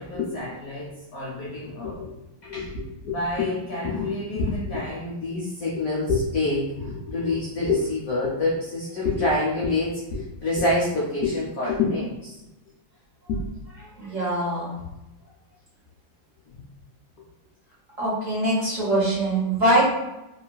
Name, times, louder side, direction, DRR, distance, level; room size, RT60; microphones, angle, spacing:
voice 1, 0.0-2.1 2.4-12.4 13.3-13.4, left 2 dB, 75° left, -5 dB, 0.8 m, -27 dB
voice 2, 14.0-14.7 18.0-19.8, right 1 dB, 45° right, -8 dB, 1.3 m, -23 dB
3.2 x 2.3 x 2.2 m, 0.95 s
omnidirectional pair, 2.1 m